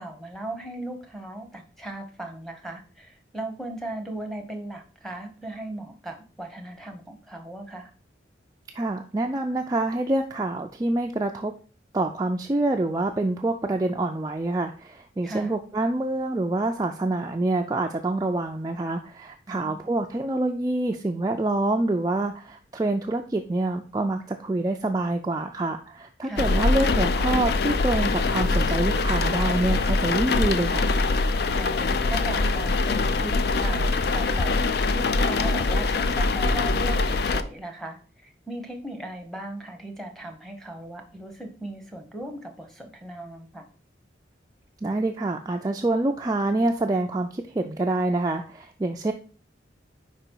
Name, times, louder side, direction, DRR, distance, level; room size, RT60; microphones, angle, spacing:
voice 1, 0.0-7.9 15.2-15.5 19.5-19.9 26.2-26.6 31.5-43.6, right 1 dB, ahead, 2 dB, 0.9 m, -37 dB
voice 2, 8.7-11.5 11.9-30.9 44.8-49.1, right 2 dB, 20° right, 3 dB, 0.3 m, -26 dB
sound 1, 26.4-37.4, left 3 dB, 55° left, 0.4 m, -23 dB
5.1 x 4.7 x 4.5 m, 0.39 s
head